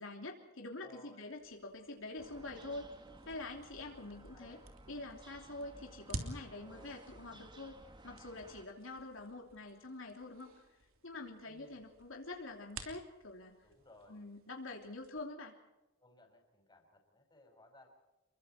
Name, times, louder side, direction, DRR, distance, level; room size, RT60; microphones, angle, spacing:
voice 1, 0.0-3.0 3.3-4.6 4.9-10.5 11.0-13.6 14.1-15.6, left 2 dB, 70° left, 1 dB, 3.0 m, -46 dB
voice 2, 0.8-1.2 4.1-4.6 6.6-7.0 11.4-11.8 13.6-14.2 16.0-17.9, left 2 dB, 20° left, 3 dB, 5.4 m, -61 dB
sound 1, 1.4-15.3, right 2 dB, 85° right, 3.2 m, -52 dB
sound 2, 2.2-8.7, right 1 dB, 20° right, 1.7 m, -57 dB
29.0 x 23.0 x 4.4 m, 1.0 s
head